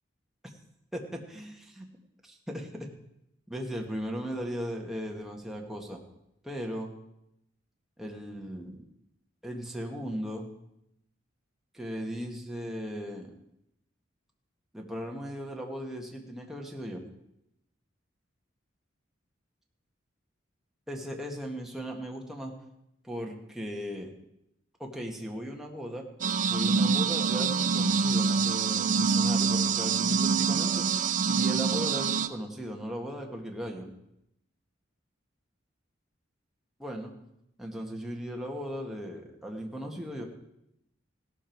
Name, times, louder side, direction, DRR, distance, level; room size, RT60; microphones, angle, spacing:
voice 1, 0.9-1.9 2.2-2.9 3.5-6.0 6.4-6.9 8.0-8.8 9.4-10.5 11.7-13.3 14.7-17.0 20.9-22.5 23.0-24.1 24.8-26.0 26.5-33.9 36.8-37.1 37.6-40.2, equal, ahead, 0 dB, 1.7 m, -37 dB
sound 1, 26.2-32.3, right 5 dB, 40° right, 0.6 m, -26 dB
16.5 x 12.5 x 4.6 m, 0.82 s
head